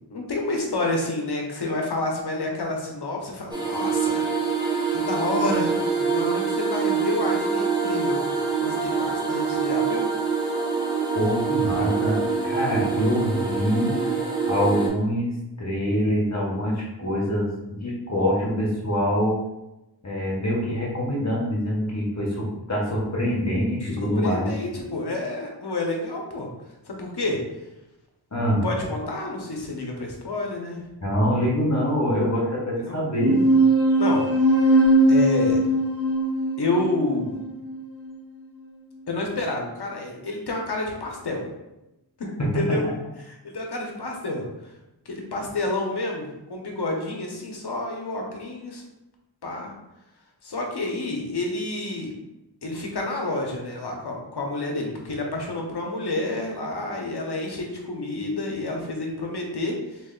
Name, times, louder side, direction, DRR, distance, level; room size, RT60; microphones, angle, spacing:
voice 1, 0.1-4.3 4.6-8.2 8.6-10.1 24.2-26.5 26.9-27.4 28.6-30.8 32.8-33.0 34.0-34.3 34.7-35.6 36.6-37.4 39.1-41.5 42.2-42.9 43.2-44.5 45.1-48.8 49.4-49.7 50.4-52.1 52.6-60.0, left 2 dB, 65° left, 1 dB, 0.8 m, -29 dB
sound 1, 3.5-14.9, right 5 dB, 10° right, 0.9 m, -25 dB
voice 2, 11.1-14.0 14.5-17.5 17.8-19.4 20.0-24.4 28.3-28.6 31.0-33.4 42.4-42.9, equal, 40° left, -4 dB, 1.0 m, -25 dB
sound 2, 33.2-38.1, right 1 dB, 35° right, 1.0 m, -20 dB
3.1 x 2.5 x 3.7 m, 0.94 s
wide cardioid pair, 65°, 42 cm